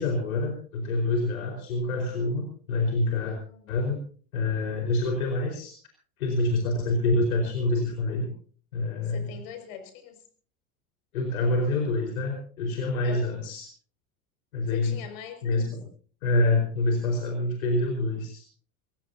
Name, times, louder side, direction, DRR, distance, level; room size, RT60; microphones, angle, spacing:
voice 1, 0.0-3.4 3.7-4.0 4.3-5.7 6.2-8.3 8.7-9.3 11.1-13.7 14.5-15.0 15.4-15.8 16.2-18.4, left 2 dB, 90° left, 2 dB, 4.6 m, -26 dB
voice 2, 3.2-3.7 9.0-10.2 13.0-13.4 14.7-15.6, left 8 dB, 70° left, 7 dB, 5.9 m, -43 dB
25.0 x 17.0 x 2.7 m, 0.44 s
hypercardioid pair, 90°, 41 cm